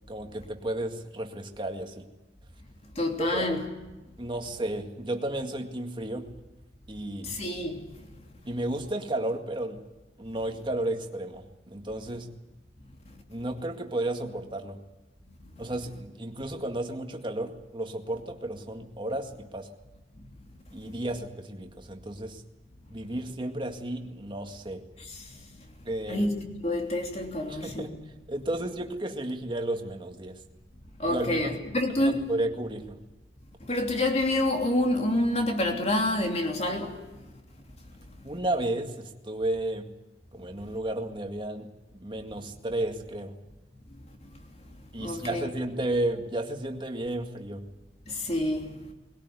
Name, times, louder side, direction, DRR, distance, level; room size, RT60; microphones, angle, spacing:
voice 1, 0.1-2.1 3.2-3.6 4.2-6.3 6.9-7.4 8.5-9.8 10.2-12.3 13.3-14.8 15.6-19.7 20.7-22.4 22.9-24.9 25.9-26.3 27.5-28.0 28.3-30.4 31.1-31.6 32.0-33.0 38.2-39.9 40.3-41.7 42.0-43.3 44.9-47.7, right 1 dB, 30° right, 2.0 m, -33 dB
voice 2, 3.0-3.6 7.3-7.8 26.1-28.0 31.0-32.1 33.7-36.9 45.0-45.5 48.2-48.7, left 1 dB, 40° left, 3.1 m, -27 dB
20.5 x 17.5 x 9.6 m
head